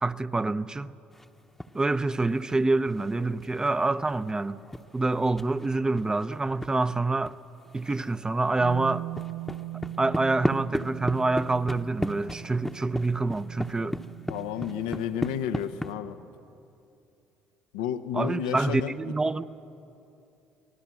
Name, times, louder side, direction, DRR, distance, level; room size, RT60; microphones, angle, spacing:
voice 1, 0.0-0.9 1.7-4.6 4.9-7.4 7.7-9.1 10.0-14.0 18.1-19.4, right 3 dB, 20° right, 0.8 m, -26 dB
sound 1, 1.1-1.9 2.2-6.8 7.2-7.3 7.6-8.2 8.4-15.9, left 1 dB, 5° left, 1.0 m, -36 dB
Bass guitar, 8.6-14.9, right 14 dB, 90° right, 0.6 m, -40 dB
voice 2, 14.3-16.2 17.7-19.1, left 9 dB, 85° left, 0.9 m, -31 dB
25.0 x 18.5 x 7.5 m
hypercardioid pair, 60°, 4 cm